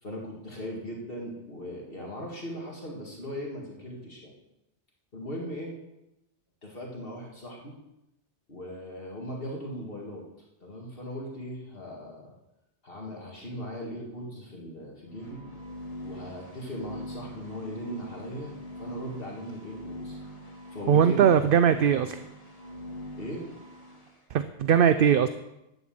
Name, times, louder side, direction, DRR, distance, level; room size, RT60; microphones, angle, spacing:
voice 1, 0.0-4.3 5.1-5.7 6.6-7.8 8.5-10.2 10.6-12.3 12.8-15.4 16.0-20.2 20.7-21.3 23.1-23.4, equal, 50° left, -1 dB, 2.4 m, -38 dB
sound 1, 15.0-24.1, equal, 30° left, 2.2 m, -43 dB
voice 2, 20.9-22.2 24.3-25.3, right 8 dB, 60° right, 11 dB, 0.7 m, -20 dB
11.5 x 8.0 x 7.7 m, 0.91 s
omnidirectional pair, 1.2 m